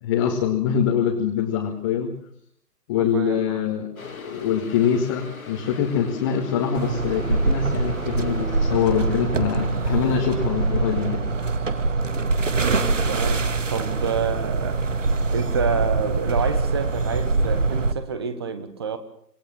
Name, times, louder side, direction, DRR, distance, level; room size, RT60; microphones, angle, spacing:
voice 1, 0.0-2.1 2.9-3.9 4.2-11.2, left 8 dB, 15° left, 1.9 m, -24 dB
voice 2, 3.0-3.6 12.5-14.9 15.3-19.0, right 6 dB, 15° right, 1.3 m, -28 dB
sound 1, 4.0-11.2, left 5 dB, 55° left, 2.5 m, -40 dB
sound 2, 6.7-17.9, right 3 dB, 50° right, 2.0 m, -24 dB
27.5 x 19.5 x 7.3 m
figure-of-eight pair, 145°, 49 cm